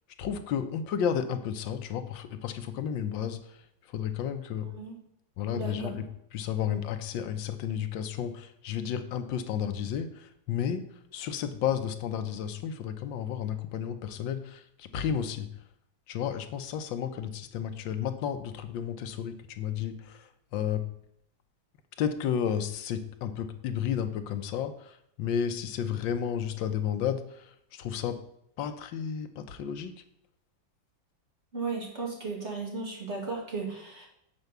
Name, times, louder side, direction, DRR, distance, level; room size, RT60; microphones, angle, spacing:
voice 1, 0.2-4.7 5.4-6.1 6.3-15.5 16.1-20.9 22.0-28.2 28.6-30.0, left 8 dB, 75° left, 8 dB, 1.4 m, -32 dB
voice 2, 5.5-6.0 31.5-34.1, right 4 dB, 35° right, -1 dB, 2.3 m, -35 dB
7.2 x 4.5 x 6.6 m, 0.74 s
omnidirectional pair, 2.2 m